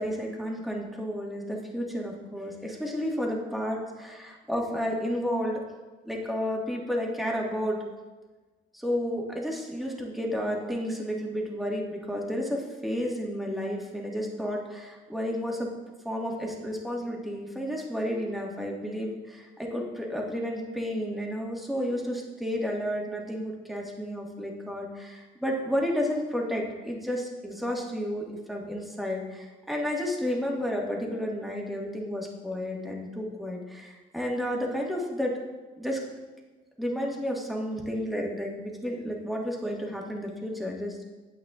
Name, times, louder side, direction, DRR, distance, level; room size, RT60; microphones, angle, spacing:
voice 1, 0.0-5.6 6.0-7.8 8.7-15.7 16.0-35.4 35.8-36.0 36.8-41.0, equal, ahead, -2 dB, 1.6 m, -31 dB
8.8 x 8.2 x 2.4 m, 1.2 s
cardioid pair, 90°, 20 cm